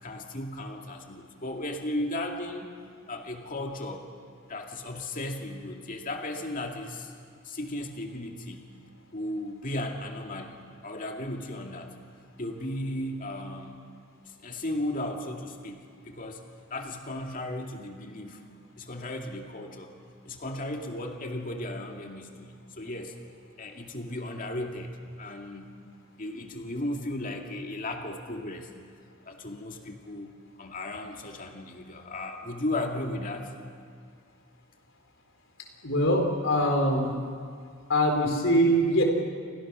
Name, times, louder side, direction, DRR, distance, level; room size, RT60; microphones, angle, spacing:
voice 1, 0.0-2.8 3.1-4.1 4.5-7.1 7.4-8.7 9.1-11.9 12.4-13.8 14.3-16.4 16.7-18.4 18.8-19.9 20.3-23.2 23.6-25.8 26.2-28.7 29.2-33.5, left 1 dB, 40° left, 2 dB, 2.3 m, -35 dB
voice 2, 35.8-37.1 37.9-39.0, equal, 65° left, 3 dB, 4.5 m, -23 dB
29.5 x 24.5 x 6.4 m, 2.1 s
head